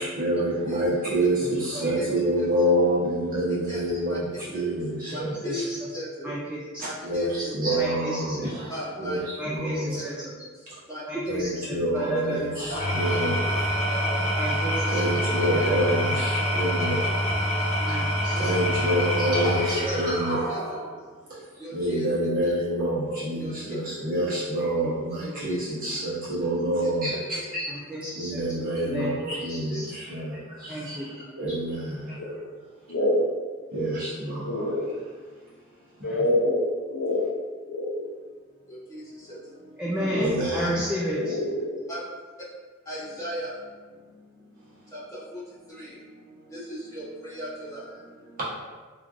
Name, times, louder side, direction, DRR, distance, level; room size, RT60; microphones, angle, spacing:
voice 1, 0.0-5.7 6.8-10.0 10.7-10.8 11.3-13.4 14.9-17.2 18.4-20.4 21.3-27.7 28.1-32.2 33.7-34.7 40.2-40.8 48.4-48.5, right 1 dB, 45° right, -9 dB, 1.0 m, -27 dB
voice 2, 1.7-2.1 2.4-2.5 3.5-3.8 4.1-4.2 4.5-4.7 5.1-6.4 6.8-7.5 8.4-9.2 10.0-10.3 10.9-11.0 11.9-12.4 13.1-13.2 13.7-14.6 14.9-15.7 16.2-17.1 17.5-17.9 18.3-19.1 19.8-20.1 20.5-20.9 21.6-22.1 22.4-22.5 23.4-23.7 25.2-25.6 26.8-26.9 27.3-27.5 35.3-36.0 38.4-39.8 41.9-42.0 42.8-48.4, equal, 15° left, -10 dB, 1.1 m, -38 dB
voice 3, 5.2-5.8 6.2-6.8 7.8-8.5 9.4-10.3 11.1-12.7 14.4-15.0 15.5-16.2 17.8-18.5 24.8-24.9 25.2-25.4 27.7-28.4 28.8-29.9 30.7-31.5 36.0-36.2 39.8-41.4, equal, 5° right, -7 dB, 0.3 m, -33 dB
Engine / Tools, 12.6-20.9, equal, 30° left, 0.6 m, -26 dB
voice 4, 32.9-33.2 34.4-34.9 36.0-38.0 41.1-41.7, left 1 dB, 75° left, -2 dB, 0.6 m, -26 dB
3.1 x 2.5 x 2.5 m, 1.4 s
head